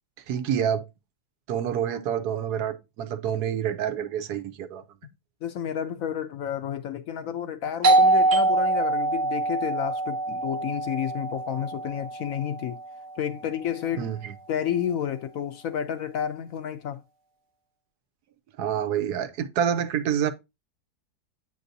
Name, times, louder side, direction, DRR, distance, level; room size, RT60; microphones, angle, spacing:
voice 1, 0.3-0.9 1.5-4.8 14.0-14.3 18.6-20.3, right 9 dB, 75° right, 1.2 m, -27 dB
voice 2, 5.4-12.8 13.2-14.1 14.5-17.0, left 9 dB, 70° left, 0.9 m, -30 dB
Doorbell, 7.8-13.2, right 2 dB, 55° right, 1.2 m, -24 dB
8.0 x 5.3 x 2.7 m
omnidirectional pair, 1.7 m